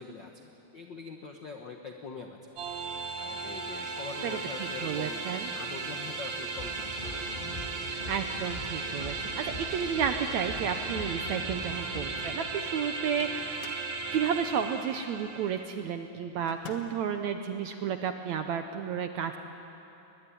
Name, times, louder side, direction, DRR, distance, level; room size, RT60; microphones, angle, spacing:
voice 1, 0.0-2.6 3.1-5.2 5.5-7.4 11.3-11.5, left 4 dB, 75° left, 3 dB, 1.0 m, -43 dB
sound 1, 2.6-15.7, right 4 dB, 55° right, 2.8 m, -36 dB
voice 2, 4.8-5.5 7.9-13.7 14.1-19.4, right 7 dB, 75° right, 7 dB, 1.7 m, -32 dB
sound 2, 6.6-12.3, left 1 dB, 25° left, 1.1 m, -42 dB
Microwave oven, 12.9-14.0 16.5-17.1, left 6 dB, 50° left, 2.3 m, -47 dB
22.0 x 20.5 x 10.0 m, 2.9 s
omnidirectional pair, 4.1 m